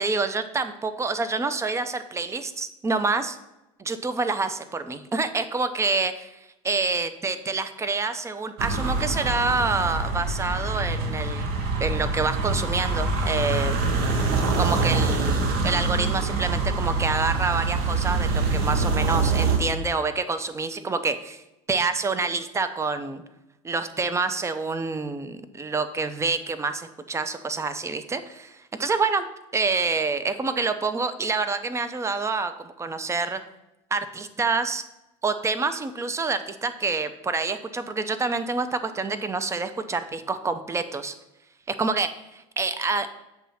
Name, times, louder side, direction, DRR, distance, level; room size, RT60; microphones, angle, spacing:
voice 1, 0.0-3.4 3.8-6.4 6.6-11.5 11.8-13.9 14.6-21.4 21.7-23.2 23.6-29.3 29.5-33.4 33.9-34.8 35.2-41.1 41.7-43.1, right 4 dB, 15° right, 11 dB, 0.6 m, -27 dB
sound 1, 8.6-19.6, right 3 dB, 60° right, 1.1 m, -25 dB
7.2 x 3.1 x 5.6 m, 0.96 s
hypercardioid pair, 95°, 17 cm